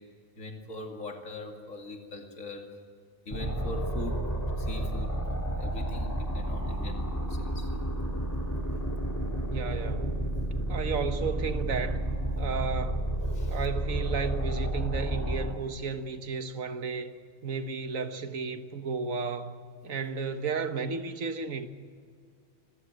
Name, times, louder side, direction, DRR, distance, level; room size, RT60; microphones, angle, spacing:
voice 1, 0.4-2.7 3.2-7.7 13.3-13.7, left 2 dB, 85° left, 2.9 m, -41 dB
sound 1, 3.3-15.5, right 1 dB, 15° left, 2.2 m, -31 dB
voice 2, 9.5-10.1 10.6-12.0 12.4-13.0 13.5-17.1 17.4-19.5 19.8-21.7, right 5 dB, 90° right, 1.7 m, -33 dB
26.0 x 15.0 x 7.9 m
omnidirectional pair, 1.4 m